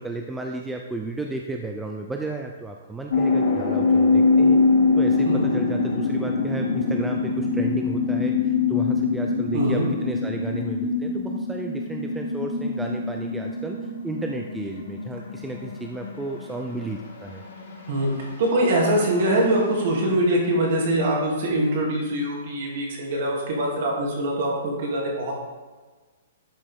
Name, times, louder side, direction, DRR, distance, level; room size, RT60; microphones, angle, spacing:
voice 1, 0.0-4.6 5.0-17.4, right 2 dB, 5° right, 1 dB, 0.4 m, -33 dB
sound 1, 3.1-19.2, left 4 dB, 70° left, 2.2 m, -24 dB
voice 2, 5.3-5.6 9.5-9.9 17.9-25.3, right 1 dB, 50° right, -2 dB, 2.6 m, -23 dB
11.5 x 5.3 x 3.6 m, 1.3 s
hypercardioid pair, 165°, 0 cm